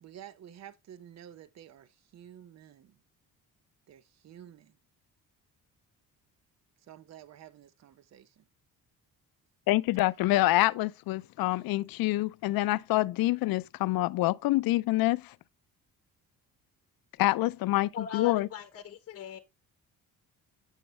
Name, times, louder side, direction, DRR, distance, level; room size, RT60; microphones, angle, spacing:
voice 1, 0.0-3.0 3.9-4.8 6.8-8.4, right 10 dB, 50° right, 0.7 m, -51 dB
voice 2, 9.7-15.3 17.2-18.5, left 18 dB, 80° left, 0.5 m, -26 dB
voice 3, 17.9-19.4, left 7 dB, 40° left, 1.0 m, -40 dB
7.9 x 6.5 x 3.1 m
cardioid pair, 125°, 35 cm